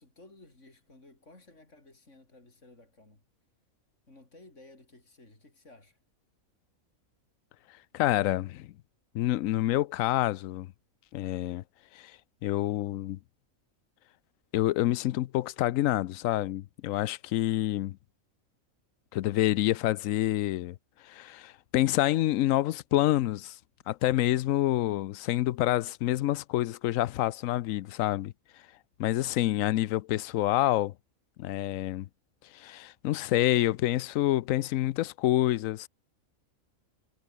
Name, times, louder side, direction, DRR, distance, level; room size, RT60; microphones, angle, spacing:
voice 1, 0.0-3.2 4.1-6.0, left 2 dB, 60° left, 5.6 m, -55 dB
voice 2, 7.9-8.7 9.1-10.7 11.1-11.6 12.0-12.1 12.4-13.2 14.5-18.0 19.1-20.8 21.1-23.6 23.9-28.3 29.0-30.9 31.4-32.1 32.5-35.9, left 14 dB, 75° left, 1.0 m, -27 dB
omnidirectional pair, 1.5 m